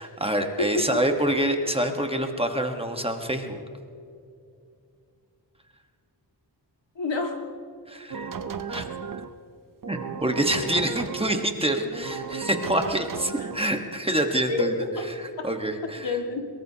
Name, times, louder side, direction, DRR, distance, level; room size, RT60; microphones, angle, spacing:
voice 1, 0.0-3.6 7.9-8.3 8.7-8.8 9.9-14.7 15.1-16.1, right 1 dB, 15° right, 4 dB, 1.3 m, -26 dB
voice 2, 0.6-1.0 7.0-7.5 13.4-13.5 14.5-15.1 15.4-15.5 15.8-16.4, left 3 dB, 85° left, 2 dB, 2.1 m, -28 dB
sound 1, 8.1-9.3 9.8-11.5 11.9-13.7, right 6 dB, 50° right, 0.7 m, -34 dB
23.0 x 22.0 x 2.9 m, 2.5 s
wide cardioid pair, 110°, 43 cm